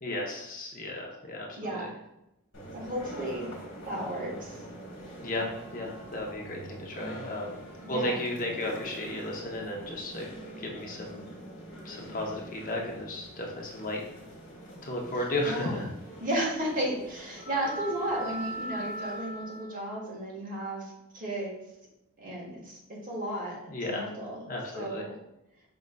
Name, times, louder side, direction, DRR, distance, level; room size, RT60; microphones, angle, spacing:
voice 1, 0.0-1.9 5.2-7.6 7.9-11.2 11.8-14.0 14.8-15.9 23.7-24.1 24.5-25.1, left 1 dB, 40° left, 0 dB, 0.7 m, -34 dB
voice 2, 1.5-1.9 2.7-3.5 3.8-4.6 7.8-8.2 15.4-15.8 16.2-21.6 22.2-25.2, right 1 dB, 40° right, -3 dB, 1.3 m, -34 dB
sound 1, 2.5-19.7, right 1 dB, 60° left, 1.5 m, -43 dB
5.3 x 3.7 x 2.2 m, 0.87 s
head